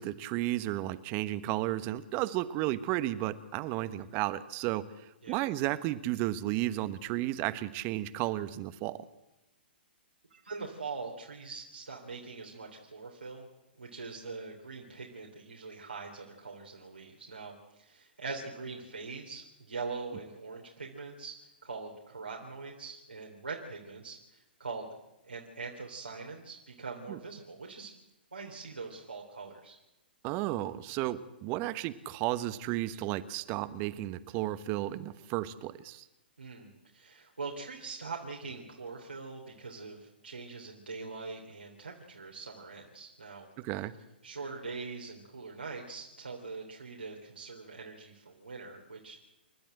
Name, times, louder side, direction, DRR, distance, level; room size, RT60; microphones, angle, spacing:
voice 1, 0.0-4.8 5.3-9.0 27.1-27.2 30.2-36.0 43.6-43.9, right 15 dB, 35° right, 14 dB, 1.2 m, -33 dB
voice 2, 10.3-13.5 13.8-21.3 21.6-24.9 25.2-27.9 28.3-29.8 36.4-43.5 44.2-49.2, right 4 dB, 85° right, -1 dB, 3.5 m, -42 dB
29.0 x 12.5 x 7.8 m, 0.92 s
figure-of-eight pair, 115°, 6 cm